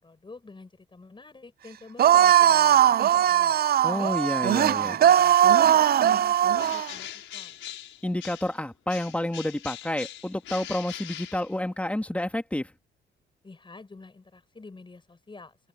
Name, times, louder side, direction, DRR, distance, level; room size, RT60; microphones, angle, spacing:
voice 1, 0.0-3.0 3.3-3.6 4.0-7.6 13.4-15.6, left 3 dB, 25° left, 5.5 m, -49 dB
sound 1, 2.0-6.9, right 10 dB, 50° right, 0.5 m, -19 dB
voice 2, 3.8-5.0 8.0-12.7, left 1 dB, 5° left, 2.1 m, -29 dB
Bird, 6.5-8.6 8.9-12.0, left 11 dB, 75° left, 6.3 m, -41 dB
open air
cardioid pair, 90°, 20 cm